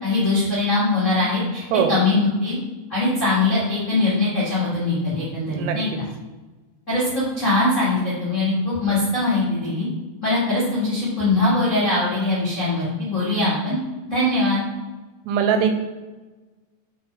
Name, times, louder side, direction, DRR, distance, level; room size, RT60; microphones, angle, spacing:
voice 1, 0.0-1.6 1.9-2.6 2.9-5.9 6.9-9.9 10.2-13.8 14.1-14.6, left 2 dB, 85° left, -10 dB, 0.6 m, -21 dB
voice 2, 5.5-6.0 15.3-15.7, right 8 dB, 80° right, 6 dB, 2.6 m, -21 dB
6.0 x 4.4 x 3.7 m, 1.2 s
omnidirectional pair, 5.1 m